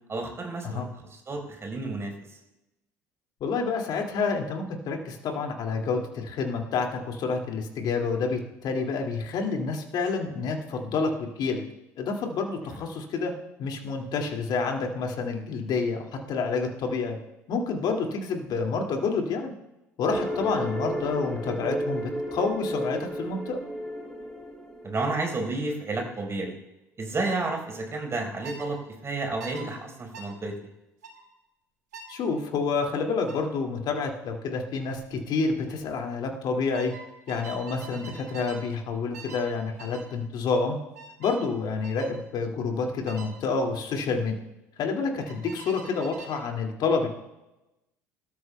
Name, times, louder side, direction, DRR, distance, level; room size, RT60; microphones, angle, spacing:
voice 1, 0.1-2.4 12.7-12.8 24.8-26.5 27.0-28.8 29.0-30.5, right 3 dB, 30° right, 2 dB, 4.4 m, -31 dB
voice 2, 3.4-11.6 12.0-13.3 13.6-16.0 16.3-17.2 17.5-19.5 20.0-23.6 32.1-36.9 37.3-40.8 41.2-44.3 44.8-47.1, left 4 dB, 50° left, 2 dB, 2.3 m, -28 dB
sound 1, 20.1-25.3, equal, 5° left, 3.3 m, -33 dB
sound 2, 28.4-28.7 29.4-29.7 30.1-30.3 31.0-31.2 31.9-32.2 33.3-33.5 34.9-35.2 35.5-35.8 36.7-38.7 39.1-39.5 39.8-40.1 40.9-41.4 41.8-42.1 43.1-43.3 45.2-46.5, right 4 dB, 80° right, 2.0 m, -44 dB
25.0 x 13.0 x 2.3 m, 0.97 s
figure-of-eight pair, 60°, 9 cm